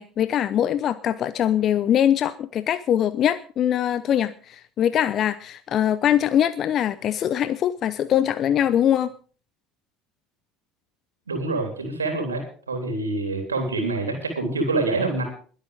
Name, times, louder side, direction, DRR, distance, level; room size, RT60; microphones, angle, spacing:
voice 1, 0.0-9.1, left 10 dB, 45° left, 14 dB, 0.7 m, -22 dB
voice 2, 11.3-12.4 12.7-15.2, right 3 dB, 85° right, 4 dB, 3.5 m, -26 dB
21.5 x 8.4 x 5.0 m, 0.43 s
figure-of-eight pair, 65°, 0 cm